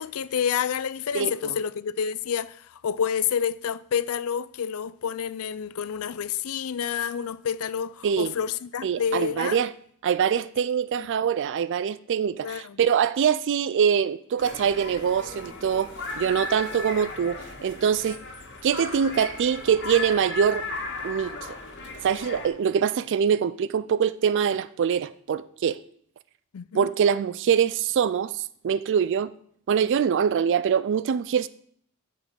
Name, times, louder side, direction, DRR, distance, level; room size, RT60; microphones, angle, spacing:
voice 1, 0.0-9.6 11.0-11.1 12.4-12.8 26.5-26.9, left 8 dB, 65° left, 0.4 m, -29 dB
voice 2, 1.1-1.6 8.0-8.3 8.8-9.7 10.0-18.2 18.6-20.7 21.0-21.6 22.0-25.8 26.7-29.3 29.7-31.5, right 7 dB, 55° right, 0.3 m, -24 dB
sound 1, 14.4-22.5, left 3 dB, 50° left, 1.9 m, -36 dB
8.6 x 6.0 x 6.3 m
head